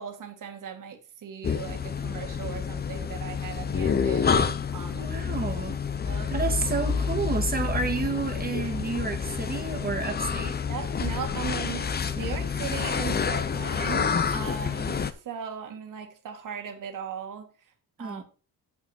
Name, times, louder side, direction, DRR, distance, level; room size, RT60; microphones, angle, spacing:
voice 1, 0.0-5.1 6.1-6.3 10.7-17.5 18.0-18.2, right 7 dB, 55° right, 1.9 m, -38 dB
sound 1, 1.4-15.1, left 6 dB, 25° left, 0.7 m, -28 dB
voice 2, 5.0-5.8 6.3-10.6 18.0-18.2, right 4 dB, 25° right, 1.8 m, -30 dB
7.3 x 5.8 x 5.8 m
cardioid pair, 130°, 37 cm